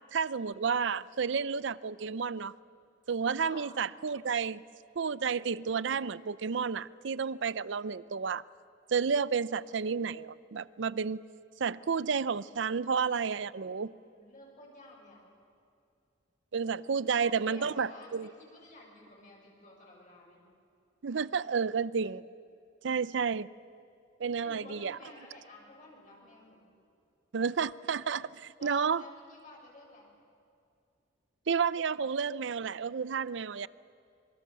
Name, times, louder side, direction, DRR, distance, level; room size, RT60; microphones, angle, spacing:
voice 1, 0.1-2.5 3.1-4.6 5.0-8.4 8.9-11.2 11.6-13.9 16.5-18.3 21.0-22.2 22.8-23.5 24.2-25.0 27.3-29.0 31.5-33.7, right 6 dB, 70° right, 0.5 m, -31 dB
voice 2, 14.0-15.2 17.0-20.4 24.4-26.7 28.5-30.1, left 2 dB, 45° left, 6.8 m, -52 dB
25.5 x 23.5 x 7.6 m
head